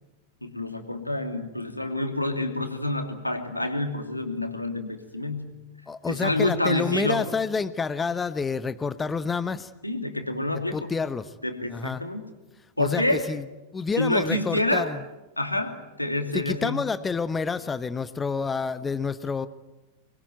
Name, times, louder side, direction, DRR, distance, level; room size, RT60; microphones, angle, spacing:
voice 1, 0.4-5.6 6.1-7.3 9.8-10.9 11.4-12.2 12.8-13.3 14.0-14.9 15.4-16.9, left 1 dB, 85° left, 6 dB, 2.7 m, -28 dB
voice 2, 5.9-9.7 10.7-11.3 11.7-12.0 12.8-13.4 13.7-15.0 16.3-19.5, left 5 dB, 15° left, 14 dB, 1.0 m, -28 dB
25.0 x 21.5 x 9.3 m, 1.0 s
figure-of-eight pair, 90°, 0 cm